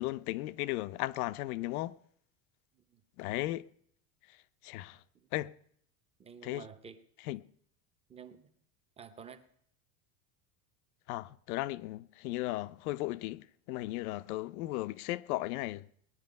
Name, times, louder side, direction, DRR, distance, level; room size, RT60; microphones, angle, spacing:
voice 1, 0.0-2.0 3.2-3.7 4.3-4.4 4.6-5.0 5.3-5.5 6.4-6.6 7.3-7.4 11.1-15.8, left 17 dB, 80° left, 0.7 m, -36 dB
voice 2, 6.2-7.0 8.1-8.5 9.0-9.4, right 7 dB, 15° right, 0.8 m, -50 dB
19.0 x 10.5 x 5.2 m
cardioid pair, 165°, 44 cm